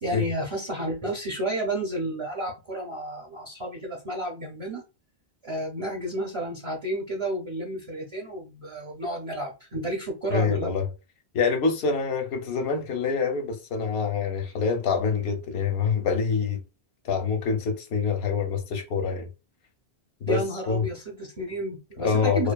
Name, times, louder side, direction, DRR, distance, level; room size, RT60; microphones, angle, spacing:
voice 1, 0.0-4.8 5.4-10.7 20.3-22.5, right 1 dB, 40° right, 0.6 m, -31 dB
voice 2, 10.3-10.8 11.3-16.6 17.0-19.3 20.2-20.4 20.7-20.9 22.0-22.5, left 5 dB, 90° left, 0.9 m, -26 dB
2.4 x 2.3 x 2.2 m
omnidirectional pair, 1.0 m